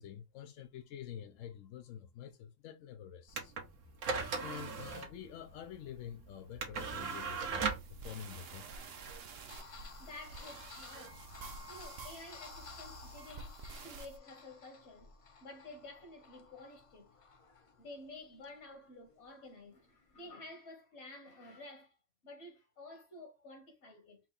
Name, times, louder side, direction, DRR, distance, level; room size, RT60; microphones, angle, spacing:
voice 1, 0.0-3.5 4.4-8.7, left 9 dB, 85° left, 1.0 m, -48 dB
sound 1, 3.3-11.8, right 5 dB, 85° right, 1.4 m, -40 dB
sound 2, 7.1-14.2, right 3 dB, 60° right, 0.9 m, -50 dB
voice 2, 9.3-11.2 11.5-15.1 15.4-22.0 22.2-24.2, left 2 dB, 65° left, 1.5 m, -52 dB
sound 3, 9.5-20.3, left 4 dB, 40° left, 0.5 m, -55 dB
4.4 x 2.8 x 3.8 m
omnidirectional pair, 1.3 m